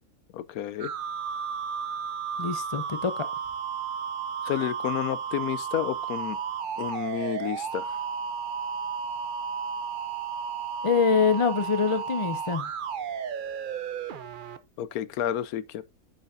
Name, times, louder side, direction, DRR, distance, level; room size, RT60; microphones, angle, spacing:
voice 1, 0.3-0.9 4.4-6.4 6.8-8.0 14.8-15.8, left 11 dB, 75° left, 1.1 m, -30 dB
sound 1, 0.8-14.6, right 7 dB, 50° right, 0.6 m, -33 dB
voice 2, 2.4-3.3 10.8-12.7, left 5 dB, 40° left, 0.4 m, -25 dB
8.8 x 6.7 x 2.6 m
omnidirectional pair, 1.6 m